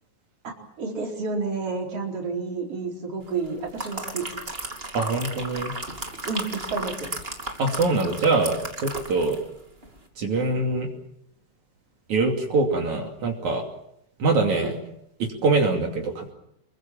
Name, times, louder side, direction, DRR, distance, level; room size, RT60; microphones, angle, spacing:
voice 1, 0.4-4.3 6.2-7.1 14.6-14.8, right 4 dB, 45° right, 1 dB, 5.1 m, -30 dB
sound 1, 3.4-9.5 9.8-10.0, right 2 dB, 20° right, 2.5 m, -35 dB
voice 2, 4.9-5.7 7.6-9.4 10.2-10.9 12.1-13.6 14.2-14.8 15.2-16.3, right 3 dB, 60° right, 1 dB, 4.0 m, -24 dB
26.5 x 23.0 x 7.5 m, 0.78 s
omnidirectional pair, 3.8 m